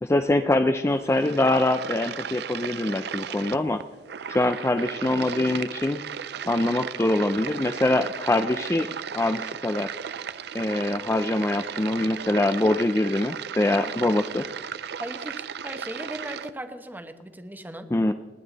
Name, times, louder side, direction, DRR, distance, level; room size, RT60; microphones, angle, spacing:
voice 1, 0.0-3.8 4.3-6.0 6.5-8.9 9.1-9.9 10.5-14.5 17.9-18.1, left 2 dB, 15° left, 9 dB, 0.4 m, -24 dB
sound 1, 0.9-16.5, right 7 dB, 65° right, 0.5 m, -35 dB
voice 2, 15.0-17.9, right 1 dB, 10° right, 8 dB, 0.9 m, -38 dB
28.5 x 9.6 x 4.0 m, 1.4 s
head